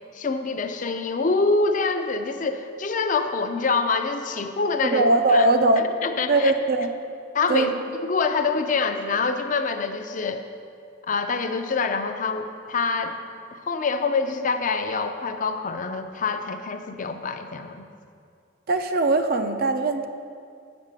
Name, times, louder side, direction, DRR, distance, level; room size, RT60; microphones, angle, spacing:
voice 1, 0.1-5.0 5.3-5.5 6.0-6.5 7.3-7.7 8.0-10.4 11.1-13.1 13.5-17.9, left 4 dB, 45° left, 7 dB, 0.5 m, -25 dB
voice 2, 4.8-5.8 6.3-6.9 7.5-7.7 18.7-20.1, right 2 dB, 50° right, 6 dB, 0.5 m, -20 dB
8.0 x 5.3 x 6.6 m, 2.3 s
head